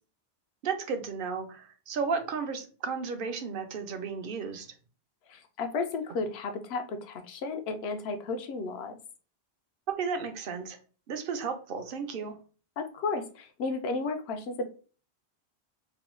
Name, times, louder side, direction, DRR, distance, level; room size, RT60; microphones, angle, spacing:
voice 1, 0.6-4.7 10.0-10.8 11.1-12.4, right 5 dB, 60° right, 0.7 m, -33 dB
voice 2, 5.3-8.9 12.8-14.6, left 3 dB, 75° left, 0.8 m, -33 dB
3.0 x 2.2 x 3.0 m
omnidirectional pair, 1.1 m